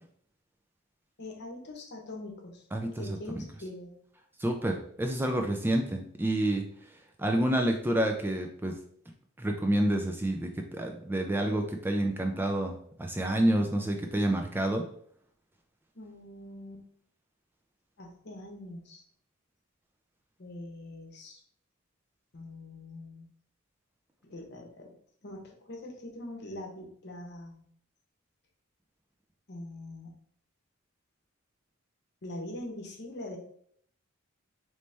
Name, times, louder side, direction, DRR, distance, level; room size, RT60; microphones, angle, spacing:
voice 1, 1.2-4.0 15.9-16.8 18.0-19.0 20.4-21.4 22.3-23.3 24.2-24.9 25.2-27.6 29.5-30.1 32.2-33.4, left 1 dB, 55° left, 2 dB, 0.9 m, -43 dB
voice 2, 2.7-3.4 4.4-6.6 7.2-8.7 9.4-12.7 13.0-14.8, right 1 dB, 10° right, 3 dB, 0.3 m, -28 dB
4.0 x 3.2 x 3.3 m, 0.62 s
head